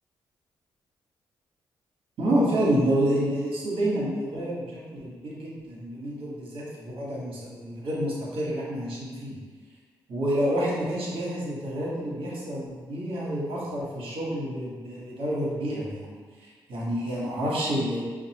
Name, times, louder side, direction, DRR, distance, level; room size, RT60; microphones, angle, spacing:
voice 1, 2.2-9.4 10.1-16.1 16.4-18.0, right 1 dB, 65° right, -6 dB, 1.3 m, -28 dB
5.1 x 2.4 x 2.9 m, 1.5 s
hypercardioid pair, 45°, 10 cm